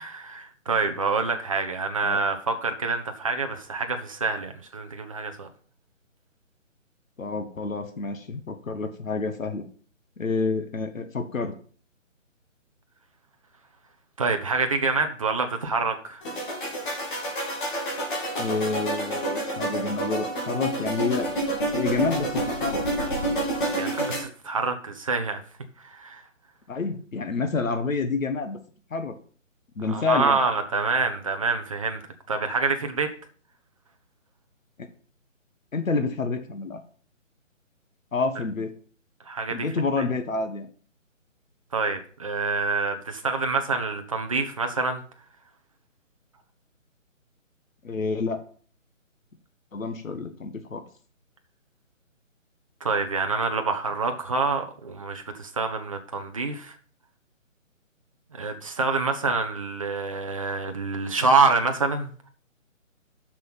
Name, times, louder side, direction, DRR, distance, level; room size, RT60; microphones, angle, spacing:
voice 1, 0.0-5.5 14.2-16.2 23.8-25.4 25.8-26.2 29.9-32.0 32.3-33.1 39.3-39.7 40.0-40.1 41.7-45.0 52.8-56.8 58.3-62.1, right 4 dB, 25° right, 5 dB, 0.8 m, -26 dB
voice 2, 7.2-9.6 10.2-11.5 18.4-21.3 21.7-22.8 26.7-28.6 28.9-29.1 29.7-30.4 34.8-34.9 35.7-36.8 38.1-38.7 39.5-40.7 47.8-48.4 49.7-50.8, left 4 dB, 80° left, 7 dB, 1.6 m, -28 dB
sound 1, 16.2-24.2, right 1 dB, 40° left, 3.1 m, -28 dB
7.3 x 6.2 x 5.6 m, 0.44 s
hypercardioid pair, 165°, 39 cm